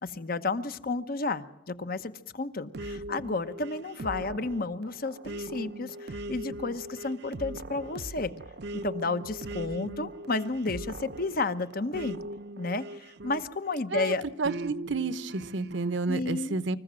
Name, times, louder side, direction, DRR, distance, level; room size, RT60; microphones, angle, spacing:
voice 1, 0.0-8.3 8.8-12.2 12.6-14.2 16.1-16.6, left 3 dB, 50° left, 11 dB, 1.0 m, -32 dB
sound 1, 2.7-13.8 14.4-16.0, right 1 dB, 60° right, 0.7 m, -40 dB
voice 2, 14.4-16.8, right 3 dB, 75° right, 14 dB, 1.0 m, -30 dB
25.5 x 15.0 x 7.6 m, 0.90 s
head